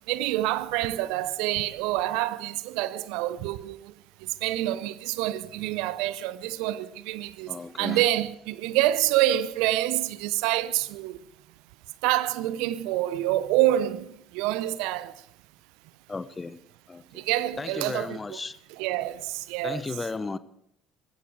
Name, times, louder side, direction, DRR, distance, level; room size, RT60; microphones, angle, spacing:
voice 1, 0.1-3.8 4.4-7.5 7.8-11.2 12.0-14.1 14.3-15.1 17.2-18.4 18.8-19.8, right 14 dB, 65° right, 0.7 m, -27 dB
voice 2, 7.5-8.0 16.1-16.6 16.9-17.2 17.6-18.6 19.6-20.4, left 3 dB, 25° left, 0.9 m, -34 dB
19.0 x 15.0 x 4.9 m
figure-of-eight pair, 60°, 0 cm